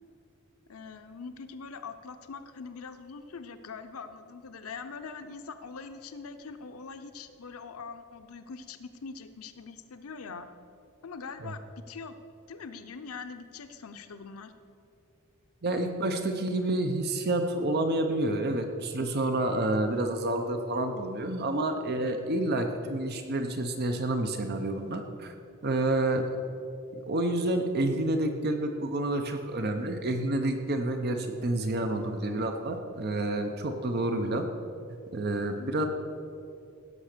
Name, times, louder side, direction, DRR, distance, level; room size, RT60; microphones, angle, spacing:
voice 1, 0.7-10.5 11.0-12.2 12.5-14.5 35.6-35.9, left 5 dB, 85° left, 9 dB, 0.7 m, -43 dB
voice 2, 15.6-25.3 25.6-26.3 26.9-34.5 35.1-35.9, right 1 dB, 50° right, 6 dB, 0.8 m, -29 dB
16.0 x 6.3 x 6.7 m, 2.6 s
head